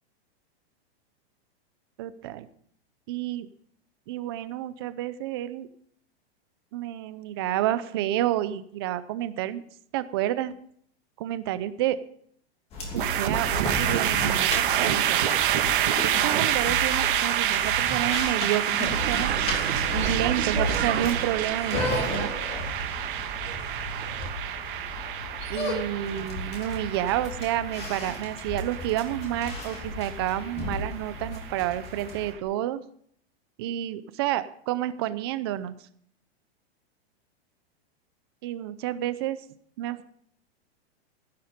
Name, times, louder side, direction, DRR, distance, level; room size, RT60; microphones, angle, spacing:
voice 1, 2.0-2.5 3.1-3.5 4.1-5.7 6.7-9.6 9.9-10.5 11.2-12.0 12.9-15.2 16.0-19.3 19.9-22.3 25.5-32.8 33.6-35.8 38.4-39.4 39.8-40.0, right 13 dB, 25° right, 14 dB, 0.5 m, -29 dB
sound 1, 12.7-32.3, left 2 dB, 20° left, 2.6 m, -34 dB
sound 2, 13.0-32.2, right 11 dB, 55° right, 1.6 m, -28 dB
sound 3, 18.8-24.3, right 9 dB, 80° right, 1.4 m, -33 dB
15.5 x 10.5 x 5.1 m, 0.64 s
supercardioid pair, 175°, 32 cm